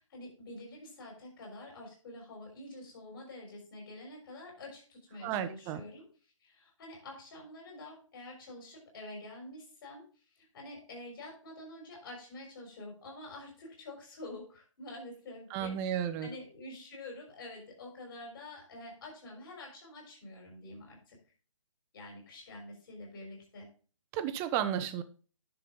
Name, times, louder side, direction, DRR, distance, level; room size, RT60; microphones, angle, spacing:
voice 1, 0.1-21.2 21.9-23.7, left 2 dB, 40° left, 0 dB, 6.0 m, -47 dB
voice 2, 5.2-5.8 15.5-16.4 24.1-25.0, right 10 dB, 15° right, 11 dB, 0.6 m, -33 dB
10.5 x 7.0 x 3.8 m, 0.38 s
figure-of-eight pair, 140°, 17 cm